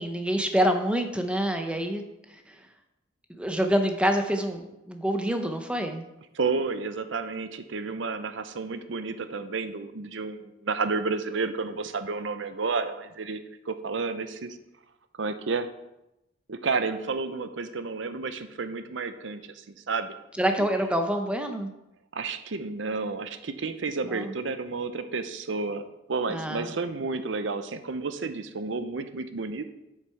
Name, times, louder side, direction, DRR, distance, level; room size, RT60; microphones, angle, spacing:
voice 1, 0.0-2.0 2.3-2.5 3.3-6.0 20.4-21.7 24.0-24.3 26.3-26.7, equal, 5° right, 5 dB, 0.7 m, -27 dB
voice 2, 6.3-13.4 13.7-14.6 15.2-15.7 16.5-20.1 20.6-20.7 22.1-25.8 26.1-29.7, right 4 dB, 75° right, 10 dB, 0.7 m, -31 dB
7.6 x 6.6 x 4.6 m, 0.91 s
head